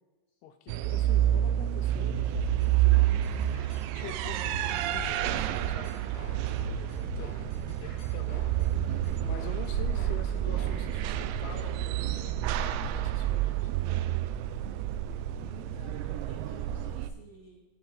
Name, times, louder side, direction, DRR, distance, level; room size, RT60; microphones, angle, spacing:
voice 1, 0.4-3.6 3.9-13.7, left 10 dB, 85° left, 8 dB, 2.3 m, -47 dB
sound 1, 0.7-17.1, right 12 dB, 85° right, 2.7 m, -29 dB
sound 2, 2.3-10.8, left 7 dB, 50° left, 5.1 m, -43 dB
voice 2, 15.5-17.6, right 3 dB, 45° right, -6 dB, 1.1 m, -51 dB
14.5 x 7.9 x 3.3 m, 1.2 s
omnidirectional pair, 5.0 m